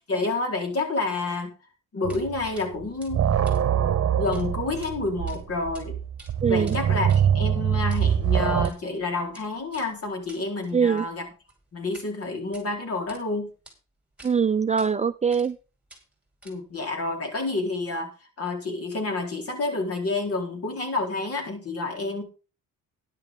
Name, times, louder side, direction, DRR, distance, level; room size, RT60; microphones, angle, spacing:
voice 1, 0.1-1.5 1.9-3.3 4.2-6.0 6.5-11.3 11.7-13.5 16.4-18.1 18.4-22.2, left 3 dB, 50° left, 3 dB, 4.2 m, -29 dB
sound 1, 2.0-2.5 2.8-8.7, right 9 dB, 50° right, 1.0 m, -24 dB
sound 2, 2.1-2.2 2.5-2.7 3.0-4.4 4.7-4.9 5.3-5.8 6.1-12.1 12.4-13.2 13.6-13.7 14.2-14.3 14.8-14.9 15.3-15.6 15.9-16.8, right 2 dB, 5° right, 5.3 m, -51 dB
voice 2, 6.4-6.8 10.7-11.1 14.2-15.6, right 6 dB, 25° right, 11 dB, 0.5 m, -22 dB
12.5 x 10.5 x 3.8 m, 0.34 s
cardioid pair, 90°, 30 cm